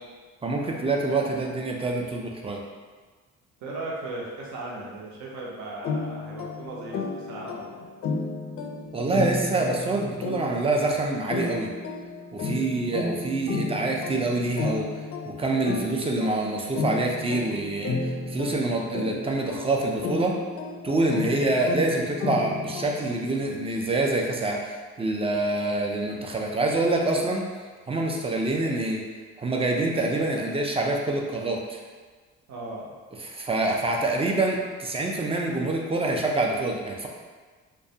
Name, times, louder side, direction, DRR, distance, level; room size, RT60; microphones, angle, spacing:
voice 1, 0.4-2.6 8.9-11.7 12.3-14.9 15.2-20.3 20.8-27.4 27.9-29.0 29.4-31.8 33.2-37.1, right 2 dB, 20° right, 0 dB, 0.4 m, -26 dB
voice 2, 3.6-7.7 12.4-12.7 32.5-32.9, right 2 dB, 65° right, -3 dB, 0.6 m, -37 dB
sound 1, 5.8-23.3, left 3 dB, 50° left, 0.4 m, -33 dB
2.3 x 2.1 x 2.7 m, 1.4 s
supercardioid pair, 65°, 30 cm